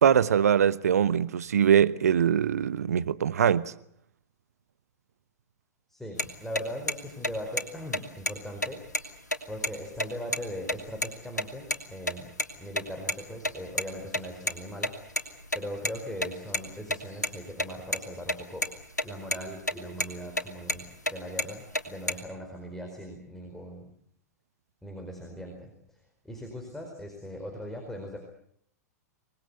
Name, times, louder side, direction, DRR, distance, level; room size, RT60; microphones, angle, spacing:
voice 1, 0.0-3.7, right 8 dB, 65° right, 1.0 m, -22 dB
voice 2, 5.9-8.8 9.5-12.3 12.6-14.9 15.5-18.6 19.0-23.9 24.8-25.7 26.2-28.2, equal, 5° left, 4.6 m, -39 dB
sound 1, 6.2-6.3 6.6-6.7 6.9-7.0 7.2-7.6 7.9-8.0 8.3-8.4 8.6-9.7 10.0-10.1 10.3-10.4 10.7-11.1 11.4-11.8 12.1-13.1 13.4-15.9 16.2-18.0 18.3-18.4 18.6-19.0 19.3-19.7 20.0-21.1 21.4-22.1, left 1 dB, 85° left, 2.8 m, -29 dB
26.0 x 20.0 x 8.1 m
figure-of-eight pair, 100°, 9 cm